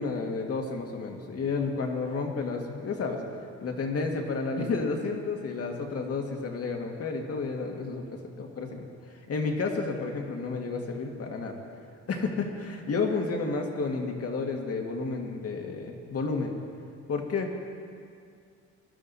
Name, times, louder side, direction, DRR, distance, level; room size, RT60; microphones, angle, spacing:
voice 1, 0.0-3.2 3.6-8.0 8.4-8.8 9.3-11.5 12.1-16.6 17.1-17.6, left 4 dB, 50° left, 2 dB, 2.0 m, -31 dB
20.5 x 12.0 x 4.2 m, 2.3 s
cardioid pair, 90°, 30 cm